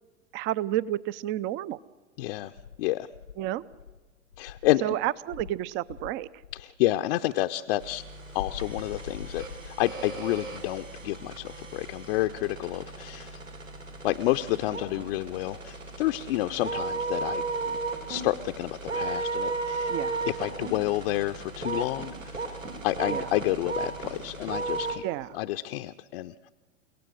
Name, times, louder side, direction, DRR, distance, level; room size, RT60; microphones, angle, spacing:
voice 1, 0.3-1.8 3.4-3.6 4.8-6.3 19.9-20.2 23.1-23.3 25.0-25.3, right 13 dB, 30° right, 19 dB, 0.6 m, -30 dB
voice 2, 2.2-2.5 2.8-3.1 4.4-4.8 6.5-8.0 8.3-13.4 14.0-17.8 18.1-19.9 20.3-22.4 22.8-25.0 25.3-26.5, left 16 dB, 50° left, 6 dB, 0.7 m, -29 dB
Insect, 2.5-4.8 5.3-6.7 8.4-10.0, left 7 dB, 80° left, 1.1 m, -43 dB
sound 1, 7.8-25.0, right 3 dB, 85° right, 3.8 m, -35 dB
30.0 x 17.5 x 6.4 m, 1.3 s
figure-of-eight pair, 90°, 38 cm